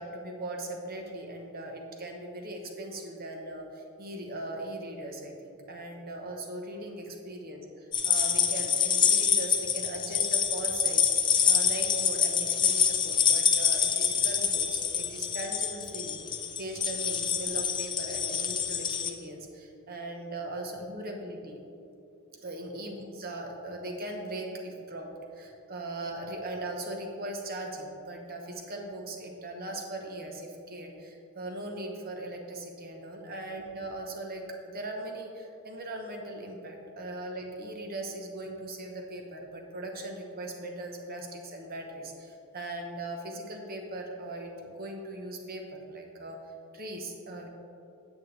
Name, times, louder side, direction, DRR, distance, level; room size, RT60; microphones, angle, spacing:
voice 1, 0.0-11.1 11.4-21.6 22.4-47.5, right 1 dB, 40° right, 2 dB, 1.0 m, -39 dB
sound 1, 7.9-19.1, left 7 dB, 20° left, 0.4 m, -26 dB
9.4 x 8.1 x 3.3 m, 2.7 s
head